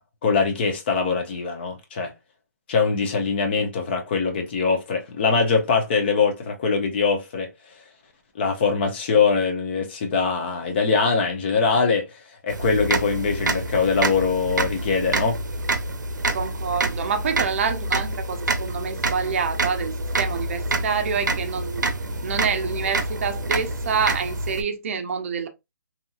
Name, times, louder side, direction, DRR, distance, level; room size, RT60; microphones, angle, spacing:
voice 1, 0.2-2.1 2.7-7.5 8.4-15.4, left 5 dB, 35° left, 0.7 m, -22 dB
sound 1, 12.5-24.6, right 2 dB, 90° right, 0.6 m, -27 dB
voice 2, 16.3-21.8 22.2-25.5, right 6 dB, 45° right, 0.5 m, -27 dB
2.7 x 2.7 x 2.3 m
hypercardioid pair, 155°, 10 cm